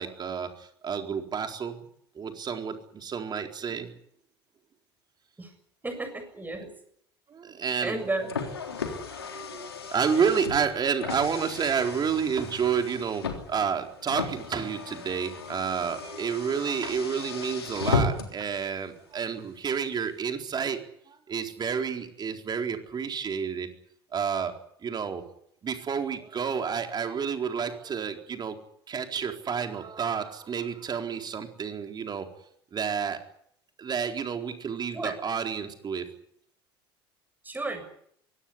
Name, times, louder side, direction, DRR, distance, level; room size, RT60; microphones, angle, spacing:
voice 1, 0.0-1.8 2.2-3.9 7.3-7.9 9.1-23.7 24.1-25.2 25.6-28.6 28.9-32.3 32.7-33.2 33.8-36.1, right 6 dB, 35° right, 5 dB, 4.2 m, -30 dB
voice 2, 5.8-6.7 7.8-8.3 34.9-35.2 37.4-37.8, right 2 dB, 15° right, 8 dB, 7.5 m, -32 dB
Car, 7.8-18.5, left 4 dB, 85° left, 3.4 m, -35 dB
23.5 x 17.5 x 9.8 m, 0.69 s
figure-of-eight pair, 70°, 13 cm